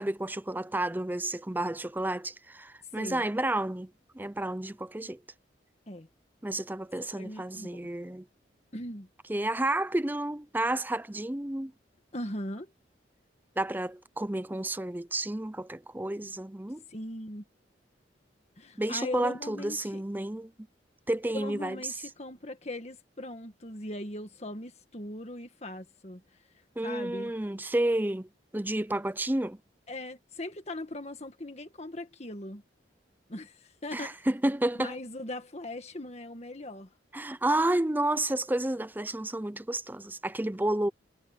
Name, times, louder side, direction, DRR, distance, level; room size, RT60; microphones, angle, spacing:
voice 1, 0.0-5.2 6.4-8.2 9.3-11.7 13.6-16.8 18.8-20.5 21.1-21.9 26.8-28.3 28.5-29.6 33.9-35.0 37.1-40.9, right 1 dB, 10° right, 0.6 m, -31 dB
voice 2, 7.2-7.7 8.7-9.1 12.1-12.7 16.9-17.4 18.6-20.0 21.3-26.2 26.8-27.3 29.9-32.6 33.3-34.2 34.8-36.9, left 1 dB, 35° left, 1.8 m, -39 dB
head